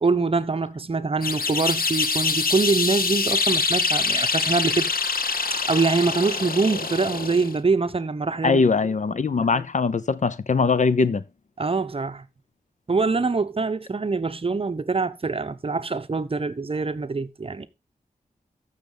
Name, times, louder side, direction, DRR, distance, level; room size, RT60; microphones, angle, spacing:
voice 1, 0.0-4.9 5.5-8.6 11.6-12.3 12.9-17.7, right 4 dB, 40° right, 0.9 m, -24 dB
sound 1, 1.2-7.6, left 4 dB, 75° left, 1.1 m, -25 dB
voice 2, 8.4-11.2, left 4 dB, 55° left, 0.7 m, -21 dB
13.5 x 6.6 x 3.9 m
wide cardioid pair, 85°, 15 cm